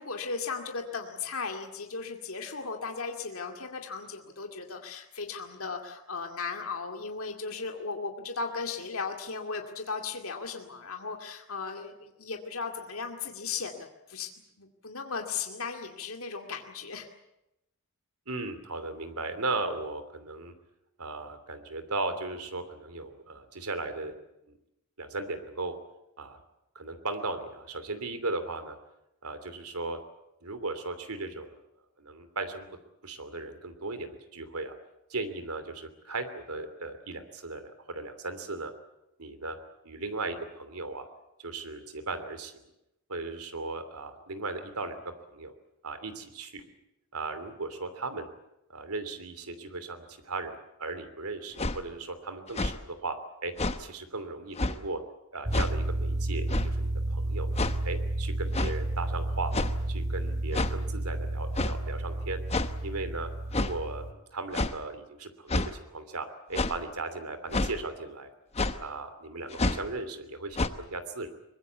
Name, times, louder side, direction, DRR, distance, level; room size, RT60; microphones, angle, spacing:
voice 1, 0.0-14.3 14.6-17.1, left 4 dB, 70° left, 4 dB, 2.3 m, -36 dB
voice 2, 18.3-20.5 21.0-24.1 25.0-25.7 26.2-26.4 26.7-28.8 29.2-30.0 30.4-31.6 32.0-32.7 33.0-34.8 35.1-38.7 39.2-39.6 39.8-41.1 41.4-42.5 43.1-45.0 45.3-45.5 45.8-46.6 47.1-48.3 48.7-53.2 53.4-55.0 55.3-57.5 57.8-59.5 59.9-62.4 62.8-63.3 63.6-68.3 68.8-71.3, right 3 dB, 85° right, 9 dB, 3.0 m, -37 dB
sound 1, 51.6-51.8 52.5-52.8 53.6-53.8 54.6-54.8 55.5-55.7 56.5-56.7 57.6-57.8 58.5-58.8 59.5-59.9 60.5-60.8 61.6-61.8 62.5-62.7 63.5-63.8 64.5-64.8 65.5-65.7 66.5-66.8 67.5-67.7 68.6-68.8 69.5-69.9 70.6-70.7, left 2 dB, 30° left, 1.0 m, -28 dB
sound 2, 55.4-64.1, right 2 dB, 30° right, 1.9 m, -31 dB
23.5 x 21.0 x 8.3 m, 0.88 s
head